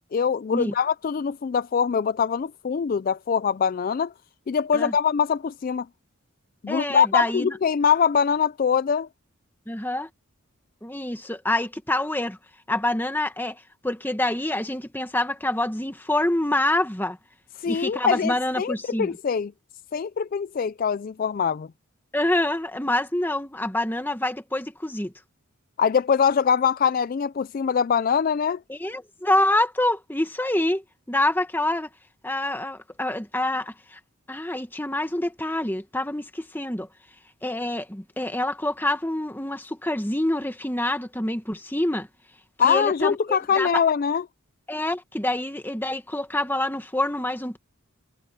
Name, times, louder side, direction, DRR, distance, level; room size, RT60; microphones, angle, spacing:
voice 1, 0.1-4.1 4.5-5.9 6.6-9.1 17.6-19.5 19.9-21.7 25.8-28.6 42.6-44.2, left 7 dB, 40° left, 0.3 m, -23 dB
voice 2, 6.7-7.6 9.7-10.1 10.8-12.4 12.7-17.2 17.6-19.2 22.1-25.1 28.7-31.9 32.2-34.0 34.3-36.9 37.4-42.1 42.6-43.7 44.7-47.6, left 1 dB, 10° left, 1.4 m, -26 dB
head